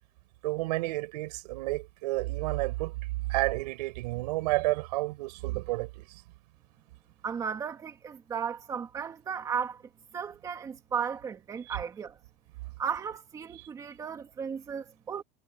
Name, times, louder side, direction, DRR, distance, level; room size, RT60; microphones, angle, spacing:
voice 1, 0.4-3.0 3.2-6.2 11.7-11.8, right 21 dB, 80° right, 5.1 m, -31 dB
voice 2, 7.2-9.8 10.1-12.2 12.8-15.2, right 7 dB, 15° right, 2.0 m, -35 dB
cardioid pair, 180°, 21 cm